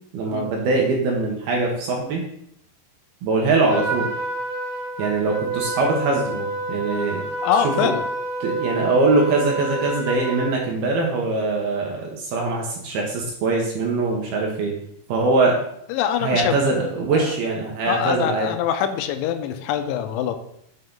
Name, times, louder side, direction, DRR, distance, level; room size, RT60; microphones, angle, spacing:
voice 1, 0.1-2.2 3.2-4.1 5.0-7.2 7.6-7.9 8.4-14.7 15.1-15.6 16.2-18.5, right 3 dB, 70° right, 0 dB, 2.5 m, -22 dB
Trumpet, 3.7-10.6, right 2 dB, 30° right, 3.5 m, -28 dB
voice 2, 7.4-8.0 15.9-16.6 17.1-17.3 17.8-20.4, left 9 dB, 90° left, 9 dB, 3.1 m, -24 dB
8.0 x 5.4 x 3.8 m, 0.73 s
omnidirectional pair, 5.3 m